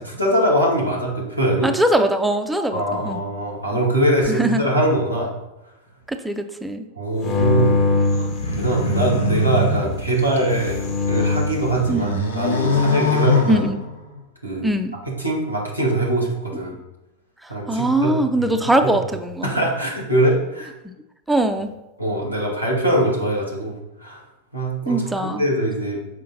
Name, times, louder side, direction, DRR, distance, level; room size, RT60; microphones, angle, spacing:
voice 1, 0.0-1.7 2.7-5.3 7.0-13.6 14.4-14.7 15.2-16.7 17.5-18.1 18.4-18.5 19.4-20.7 22.0-24.2 24.5-26.0, right 1 dB, 90° left, -3 dB, 2.0 m, -22 dB
voice 2, 1.6-3.2 4.2-4.6 6.1-6.9 11.9-12.2 13.5-13.8 14.6-14.9 17.4-19.5 20.8-20.9 21.3-21.7 24.9-25.4, right 1 dB, 5° right, 6 dB, 0.6 m, -21 dB
sound 1, 7.2-9.2 10.2-11.7, left 3 dB, 35° left, 1.6 m, -22 dB
sound 2, 8.2-10.9 11.4-14.2, left 2 dB, 70° left, 1.1 m, -23 dB
7.4 x 5.0 x 4.2 m, 0.97 s
figure-of-eight pair, 90°, 0 cm